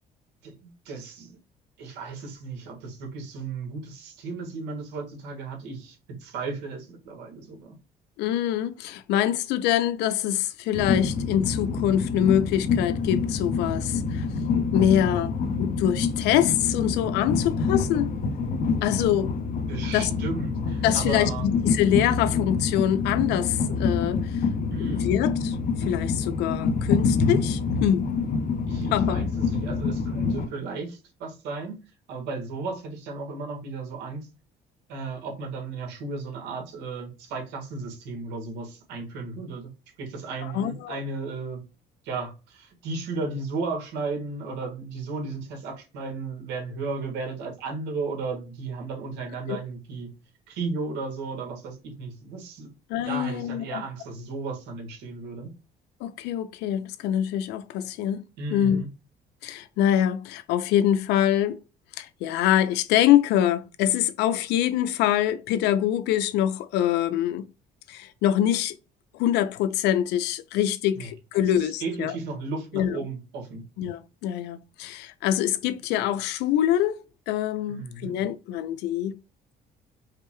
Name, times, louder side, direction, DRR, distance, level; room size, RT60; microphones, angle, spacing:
voice 1, 0.8-1.4 1.8-7.7 19.7-21.5 24.7-25.1 28.7-31.7 32.1-34.3 34.9-39.7 40.0-41.6 42.0-50.1 50.5-52.7 53.0-55.5 58.4-58.9 70.9-71.1 71.6-73.6 77.7-78.1, right 4 dB, 90° right, 1.4 m, -34 dB
voice 2, 8.2-14.3 14.7-18.1 18.8-19.3 19.9-20.1 20.8-24.4 24.8-28.1 28.9-29.2 40.4-41.0 49.5-49.6 52.9-53.8 56.0-58.2 58.5-58.8 59.4-61.6 62.0-67.5 67.9-68.8 69.1-72.1 72.7-73.0 73.8-79.2, left 11 dB, 90° left, 0.5 m, -25 dB
Train, 10.7-30.5, left 4 dB, 55° left, 0.7 m, -27 dB
5.0 x 2.2 x 3.0 m
cardioid pair, 110°, 17 cm